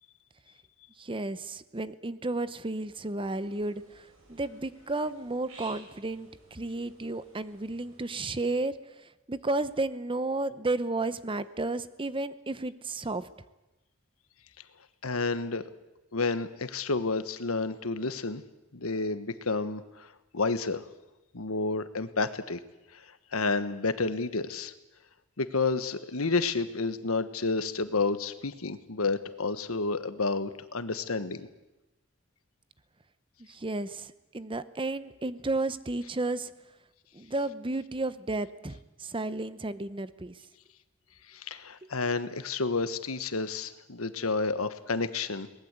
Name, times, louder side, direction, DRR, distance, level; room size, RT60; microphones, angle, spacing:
voice 1, 1.0-8.7 9.3-13.3 33.4-36.5 37.1-40.3, right 2 dB, 25° right, 14 dB, 0.8 m, -32 dB
sound 1, 3.2-8.3, right 2 dB, 70° right, 7.1 m, -55 dB
voice 2, 15.0-15.6 16.1-18.4 18.7-20.1 20.3-20.8 21.3-22.6 22.9-23.0 23.3-24.7 25.4-31.5 41.3-45.5, left 3 dB, 85° left, 12 dB, 1.3 m, -30 dB
22.5 x 19.5 x 8.2 m, 1.0 s
head